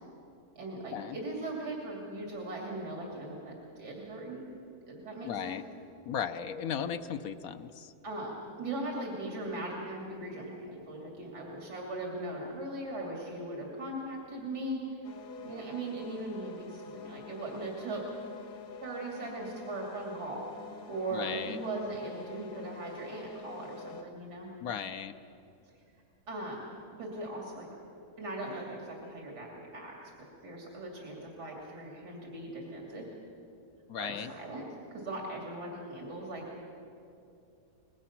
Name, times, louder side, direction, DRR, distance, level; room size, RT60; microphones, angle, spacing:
voice 1, 0.6-4.5 4.9-5.6 6.8-6.9 8.0-15.0 15.4-18.1 18.8-20.5 20.9-24.5 26.3-26.6 27.0-27.7 28.2-30.1 30.4-33.1 33.9-36.4, right 2 dB, 85° right, -1 dB, 3.2 m, -39 dB
voice 2, 5.2-5.6 6.0-7.9 21.1-21.6 24.6-25.1 33.9-34.3, left 8 dB, 65° left, 10 dB, 1.2 m, -36 dB
sound 1, 15.0-24.0, left 3 dB, 85° left, 1.6 m, -47 dB
24.5 x 20.5 x 5.9 m, 2.7 s
omnidirectional pair, 1.7 m